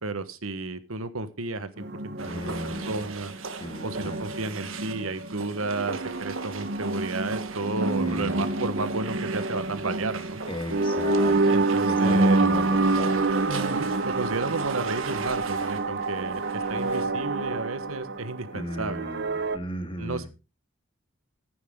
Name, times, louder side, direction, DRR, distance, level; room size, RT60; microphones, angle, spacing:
voice 1, 0.0-2.5 2.9-3.3 3.8-10.4 11.5-12.5 13.5-19.0 20.0-20.3, right 3 dB, 85° right, 13 dB, 1.3 m, -32 dB
sound 1, 1.8-19.6, right 2 dB, 55° right, 1.0 m, -27 dB
voice 2, 2.2-3.1 3.6-4.3 8.0-8.6 10.5-13.3 18.5-20.3, equal, 25° left, 7 dB, 2.2 m, -37 dB
sound 2, 2.2-17.0, right 4 dB, 70° right, 1.6 m, -39 dB
14.0 x 9.4 x 3.7 m, 0.30 s
head